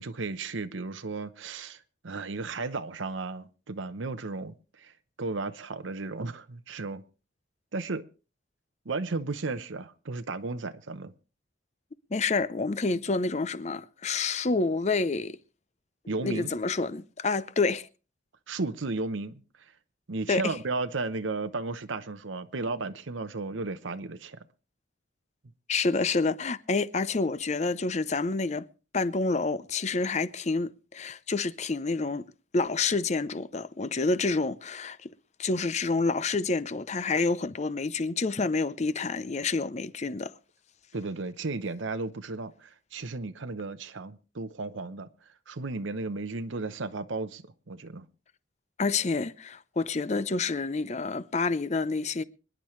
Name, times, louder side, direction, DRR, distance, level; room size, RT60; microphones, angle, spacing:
voice 1, 0.0-7.0 7.7-8.0 8.8-11.1 16.1-16.5 18.5-19.7 20.1-24.4 40.9-48.1, right 3 dB, 80° right, 0.8 m, -34 dB
voice 2, 12.1-15.4 16.2-17.9 20.3-20.5 25.7-28.7 28.9-32.3 32.5-35.1 35.4-40.3 48.8-52.2, left 3 dB, 35° left, 0.6 m, -28 dB
25.5 x 10.5 x 3.2 m
head